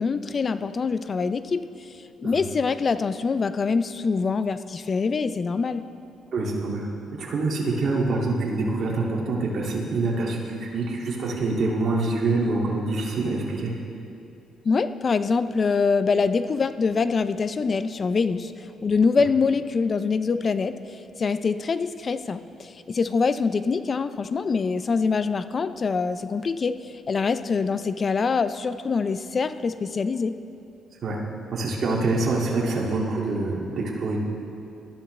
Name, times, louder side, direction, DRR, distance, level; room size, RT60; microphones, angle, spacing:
voice 1, 0.0-1.6 2.2-5.8 14.6-20.8 21.2-26.8 27.1-30.3, left 4 dB, 40° left, 12 dB, 0.5 m, -24 dB
voice 2, 6.3-6.9 7.2-13.7 31.0-31.2 31.5-34.2, right 3 dB, 55° right, -4 dB, 2.3 m, -25 dB
20.0 x 12.5 x 3.3 m, 2.6 s
cardioid pair, 90°, 0 cm